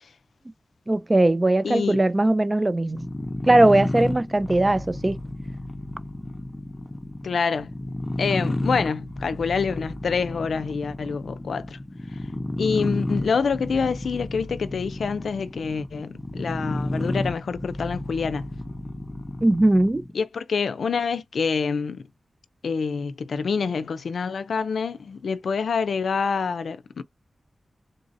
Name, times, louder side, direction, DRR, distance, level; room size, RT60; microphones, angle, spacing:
voice 1, 0.9-3.1 3.4-5.2 19.4-20.0, right 2 dB, 20° right, 0.4 m, -19 dB
voice 2, 1.6-2.0 7.2-7.7 8.2-11.8 12.6-18.5 20.1-22.1 22.6-27.0, left 5 dB, 90° left, 0.3 m, -26 dB
sound 1, 2.9-20.1, left 1 dB, 25° left, 0.7 m, -31 dB
3.9 x 2.5 x 2.5 m
wide cardioid pair, 100°, 0 cm